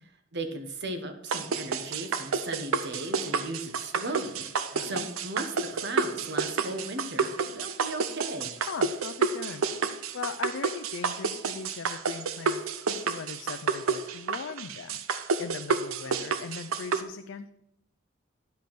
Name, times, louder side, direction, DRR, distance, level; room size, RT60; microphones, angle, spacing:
voice 1, 0.0-8.5, right 2 dB, 55° right, 8 dB, 1.2 m, -37 dB
sound 1, 1.3-17.0, right 5 dB, 85° right, 0.6 m, -30 dB
voice 2, 4.7-5.1 8.7-9.6 10.1-17.5, left 5 dB, 60° left, 8 dB, 0.4 m, -40 dB
10.5 x 5.2 x 5.9 m, 0.79 s
head